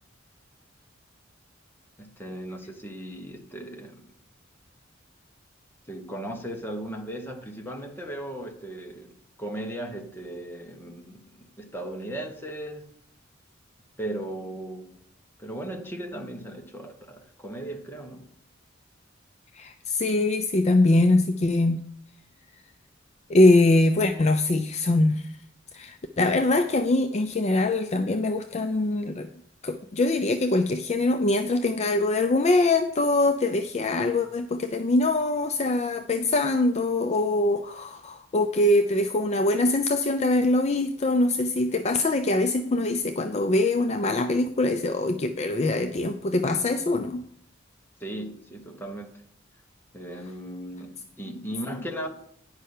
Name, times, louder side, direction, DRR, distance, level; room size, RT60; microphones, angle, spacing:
voice 1, 2.0-4.1 5.9-9.1 9.4-12.9 14.0-14.9 15.4-18.3 48.0-49.2 49.9-52.1, right 1 dB, 10° left, 1.3 m, -37 dB
voice 2, 19.5-21.8 23.3-25.3 25.7-29.3 29.6-47.2, left 2 dB, 35° left, 0.5 m, -23 dB
10.5 x 5.5 x 6.5 m
head